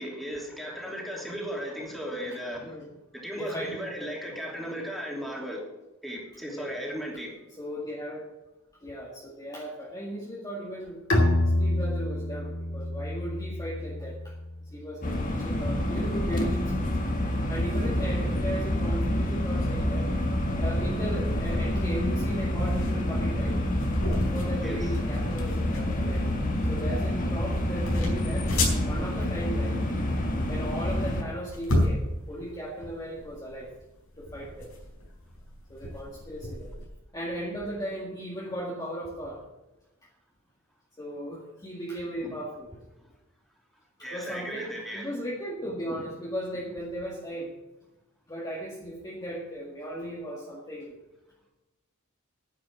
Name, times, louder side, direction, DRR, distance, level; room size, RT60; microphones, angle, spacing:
voice 1, 0.0-2.8 3.1-5.7 6.0-7.3 24.6-24.9 28.9-29.1 42.2-42.3 43.0-43.1 44.0-45.1 45.9-46.0, equal, ahead, -2 dB, 3.0 m, -36 dB
voice 2, 3.4-3.8 6.5-6.8 7.6-8.3 8.8-11.0 11.6-14.3 14.7-16.9 17.5-20.1 20.6-23.6 24.2-26.3 26.7-29.8 30.5-33.7 34.2-34.7 35.7-36.7 37.1-39.4 41.0-42.8 44.0-47.5 48.3-51.0, right 1 dB, 15° left, -4 dB, 1.8 m, -36 dB
Bowed string instrument, 11.1-14.6, left 1 dB, 60° left, 2.4 m, -27 dB
sound 1, 15.0-31.2, left 1 dB, 40° left, 1.8 m, -28 dB
sound 2, 21.1-36.8, left 1 dB, 80° left, 4.4 m, -34 dB
10.0 x 8.5 x 7.8 m, 1.0 s
head